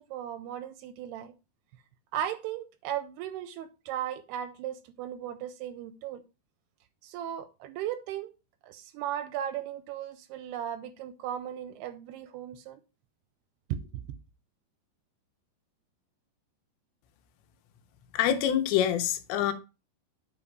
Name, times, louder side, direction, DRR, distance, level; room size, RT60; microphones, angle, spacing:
voice 1, 0.0-1.3 2.1-6.2 7.0-8.3 8.6-12.8 13.7-14.0, right 10 dB, 80° right, 2.5 m, -36 dB
voice 2, 18.1-19.5, left 10 dB, 85° left, 3.1 m, -26 dB
9.2 x 4.0 x 4.6 m
omnidirectional pair, 4.9 m